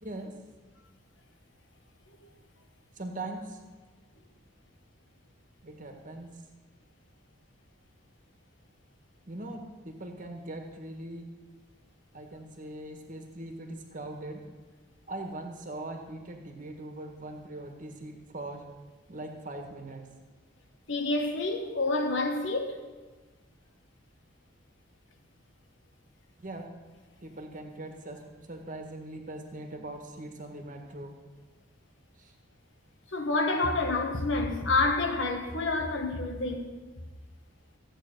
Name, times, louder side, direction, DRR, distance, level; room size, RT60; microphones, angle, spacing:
voice 1, 0.0-0.3 2.9-3.6 5.6-6.4 9.3-11.3 12.1-14.4 15.1-18.6 19.1-20.1 26.4-26.7 27.2-28.2 28.5-31.1 32.2-32.3, right 2 dB, 40° right, 1.7 m, -41 dB
voice 2, 20.9-22.8 33.1-36.8, left 3 dB, 65° left, 1.5 m, -28 dB
15.0 x 8.8 x 6.7 m
head